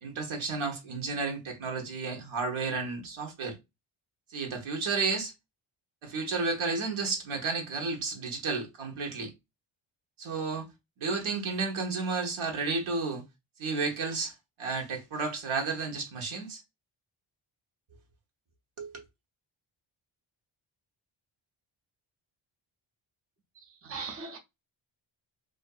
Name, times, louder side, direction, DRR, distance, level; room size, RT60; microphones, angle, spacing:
voice 1, 0.0-3.6 4.3-5.3 6.0-9.3 10.2-10.7 11.0-13.2 13.6-14.3 14.6-16.6 18.8-19.0, right 4 dB, 75° right, 1.0 m, -32 dB
voice 2, 23.6-24.4, right 4 dB, 30° right, 0.4 m, -40 dB
2.5 x 2.5 x 2.3 m
wide cardioid pair, 115°, 49 cm